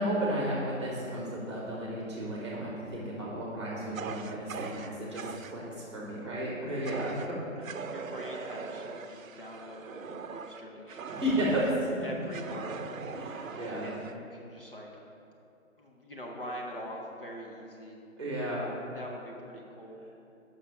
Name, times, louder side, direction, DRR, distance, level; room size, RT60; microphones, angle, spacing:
voice 1, 0.0-7.9 11.1-11.6 13.1-13.9 18.2-18.7, equal, 20° right, -5 dB, 1.3 m, -33 dB
Fire, 3.9-5.6 6.8-7.3 7.6-11.8 12.3-14.2, right 6 dB, 70° right, 0.6 m, -41 dB
voice 2, 6.2-6.6 7.9-12.9 13.8-14.9 15.8-18.0 18.5-20.2, equal, 40° left, -2 dB, 0.9 m, -44 dB
7.3 x 5.7 x 5.6 m, 2.7 s
hypercardioid pair, 175°, 41 cm